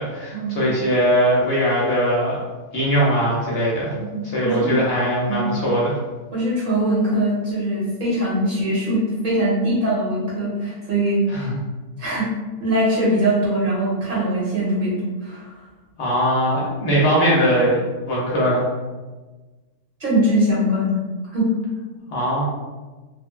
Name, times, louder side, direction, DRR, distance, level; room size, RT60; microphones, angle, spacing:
voice 1, 0.0-2.4 2.7-4.0 4.3-6.0 11.3-11.6 16.0-17.8 18.1-18.6 22.1-22.5, equal, 60° left, -5 dB, 0.8 m, -20 dB
voice 2, 4.0-4.7 5.3-5.5 6.3-11.4 12.0-12.3 12.6-15.5 20.0-21.0 21.3-21.5, right 1 dB, 45° right, -7 dB, 1.2 m, -22 dB
3.0 x 2.1 x 2.3 m, 1.3 s
omnidirectional pair, 1.3 m